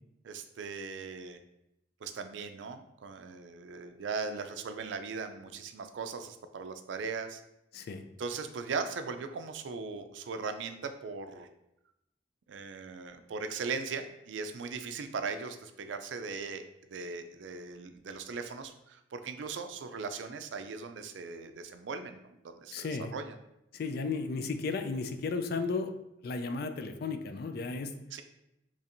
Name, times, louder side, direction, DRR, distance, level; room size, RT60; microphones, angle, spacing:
voice 1, 0.2-1.4 2.0-7.4 8.2-11.5 12.5-16.6 16.9-23.3 28.1-28.2, right 4 dB, 80° right, 8 dB, 0.4 m, -39 dB
voice 2, 7.7-8.0 22.7-23.1 23.7-25.9 26.2-28.0, left 4 dB, 55° left, 8 dB, 0.3 m, -34 dB
3.1 x 2.5 x 4.3 m, 0.85 s
head